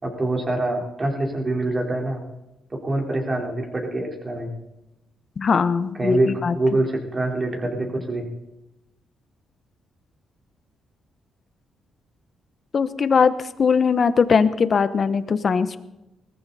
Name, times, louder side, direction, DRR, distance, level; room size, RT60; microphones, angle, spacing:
voice 1, 0.0-2.2 2.7-4.5 6.0-8.2, right 2 dB, 30° right, 0 dB, 4.4 m, -25 dB
voice 2, 5.4-6.5 12.7-13.3 13.6-15.8, left 5 dB, 45° left, 12 dB, 1.1 m, -20 dB
20.0 x 14.5 x 4.3 m, 0.96 s
cardioid pair, 85°, 0 cm